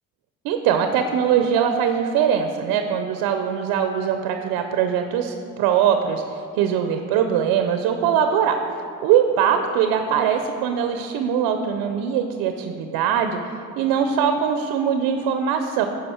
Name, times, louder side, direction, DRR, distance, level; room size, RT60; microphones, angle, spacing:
voice 1, 0.4-8.6 9.0-13.4 13.8-15.9, right 8 dB, 75° right, 6 dB, 0.6 m, -21 dB
9.8 x 5.3 x 4.3 m, 2.5 s
supercardioid pair, 90°, 36 cm